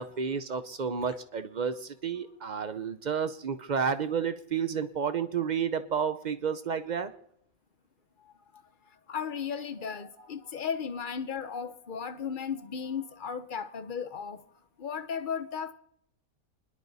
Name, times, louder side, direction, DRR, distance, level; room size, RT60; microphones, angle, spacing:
voice 1, 0.0-7.1, right 6 dB, 65° right, 0.4 m, -31 dB
voice 2, 9.1-14.4 14.8-15.7, left 7 dB, 45° left, 0.7 m, -35 dB
29.5 x 11.0 x 4.1 m
omnidirectional pair, 1.7 m